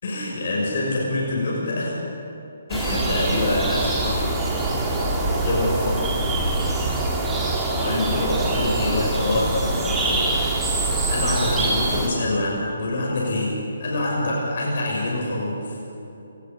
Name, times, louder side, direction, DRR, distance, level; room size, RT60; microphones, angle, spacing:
voice 1, 0.0-2.0 2.7-4.6 4.9-6.1 7.8-10.4 11.1-15.8, left 2 dB, 55° left, -3 dB, 6.2 m, -26 dB
sound 1, 2.7-12.1, right 2 dB, 10° right, 3.3 m, -24 dB
28.0 x 19.0 x 5.4 m, 2.9 s
hypercardioid pair, 155°, 0 cm